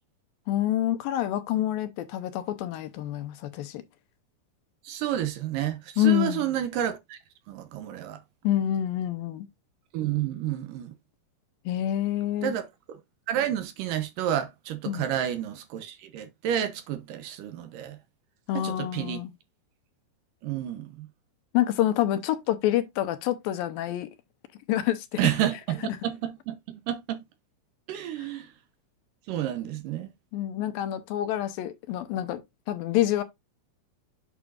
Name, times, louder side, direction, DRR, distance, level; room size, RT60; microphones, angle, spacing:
voice 1, 0.5-3.8 6.0-6.5 8.4-9.5 11.7-12.5 14.9-15.1 18.5-19.3 21.5-24.1 24.7-25.2 25.8-26.0 30.3-32.4 32.7-33.2, left 12 dB, 80° left, 2.5 m, -27 dB
voice 2, 4.8-7.2 7.5-8.2 9.9-10.9 12.4-12.6 13.3-18.0 18.5-19.2 20.4-21.1 25.2-27.2 27.9-28.5 29.3-30.1, right 11 dB, 75° right, 2.3 m, -30 dB
8.3 x 6.1 x 2.4 m
omnidirectional pair, 4.1 m